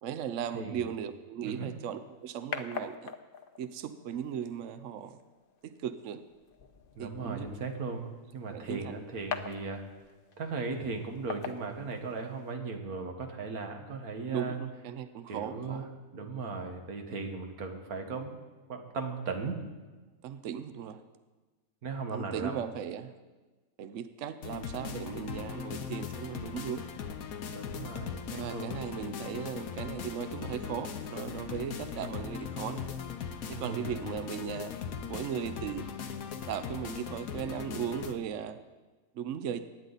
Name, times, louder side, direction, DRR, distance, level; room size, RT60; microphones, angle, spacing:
voice 1, 0.0-3.1 3.6-5.1 5.6-6.2 7.0-7.5 8.5-8.9 14.3-15.9 20.2-21.0 22.1-23.1 23.8-26.9 28.3-32.9 33.5-34.7 35.1-35.9 36.5-38.6 39.2-39.6, right 8 dB, 65° right, 11 dB, 0.9 m, -37 dB
voice 2, 0.5-0.9 1.4-1.7 7.0-9.8 10.4-14.6 15.3-18.4 18.7-19.6 21.8-22.6 27.5-28.8 33.5-34.0, right 4 dB, 85° right, 4 dB, 1.9 m, -37 dB
sound 1, 1.5-12.5, left 7 dB, 45° left, 0.8 m, -45 dB
sound 2, 24.4-38.1, left 7 dB, 75° left, 1.3 m, -39 dB
24.0 x 9.8 x 4.0 m, 1.2 s
omnidirectional pair, 1.5 m